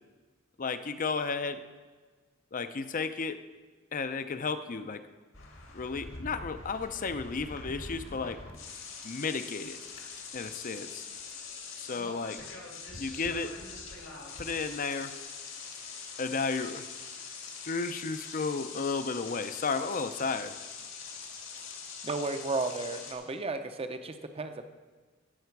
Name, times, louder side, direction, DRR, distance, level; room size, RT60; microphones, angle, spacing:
voice 1, 0.6-1.6 2.5-3.4 3.9-5.0 5.7-8.4 9.0-9.8 10.3-11.0 11.8-12.4 13.0-13.6 14.4-15.2 16.2-16.9 17.7-20.6, left 4 dB, 45° left, 10 dB, 0.6 m, -33 dB
sound 1, 5.3-23.1, left 4 dB, 80° left, 2.3 m, -43 dB
voice 2, 22.0-24.7, right 3 dB, 30° right, 8 dB, 0.7 m, -34 dB
16.0 x 6.8 x 4.7 m, 1.4 s
head